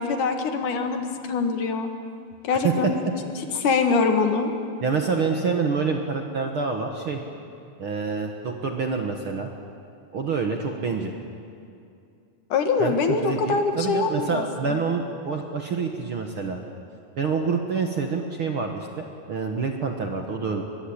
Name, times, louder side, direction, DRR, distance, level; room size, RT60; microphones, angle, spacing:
voice 1, 0.0-1.9 2.4-3.0 3.6-4.5 12.5-14.4, left 4 dB, 65° left, 5 dB, 3.0 m, -23 dB
voice 2, 4.8-7.2 7.8-9.5 10.1-11.1 12.8-16.6 17.2-20.6, right 5 dB, 50° right, 3 dB, 1.8 m, -27 dB
23.0 x 22.5 x 8.7 m, 2.5 s
omnidirectional pair, 4.0 m